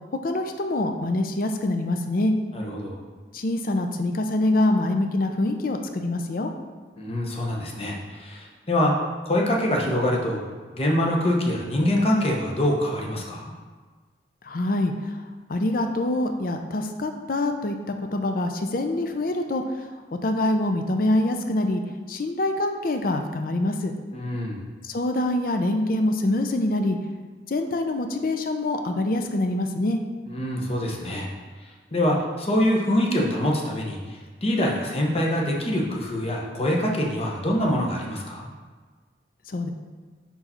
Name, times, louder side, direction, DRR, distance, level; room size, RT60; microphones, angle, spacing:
voice 1, 0.1-2.3 3.3-6.5 14.4-15.2 15.5-17.8 18.1-21.8 22.1-23.9 24.8-27.0 27.5-30.0 39.5-39.7, left 1 dB, 50° left, 5 dB, 0.5 m, -25 dB
voice 2, 2.5-3.0 7.0-8.9 9.2-10.4 10.7-13.5 24.1-24.6 30.3-31.3 31.9-38.5, left 1 dB, 35° left, -1 dB, 0.9 m, -24 dB
5.4 x 4.7 x 4.3 m, 1.4 s
head